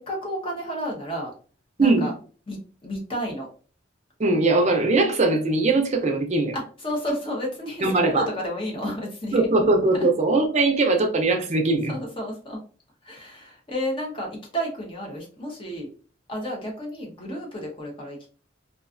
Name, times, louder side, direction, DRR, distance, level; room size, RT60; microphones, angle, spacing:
voice 1, 0.0-1.3 1.8-2.1 2.5-3.5 6.5-9.5 9.9-10.1 11.9-12.6 13.0-15.9 16.3-18.3, equal, 30° left, 0.7 m, -31 dB
voice 2, 1.8-2.1 4.2-6.5 7.8-8.3 9.3-11.9, right 2 dB, 35° right, 0.5 m, -20 dB
2.4 x 2.3 x 2.4 m
head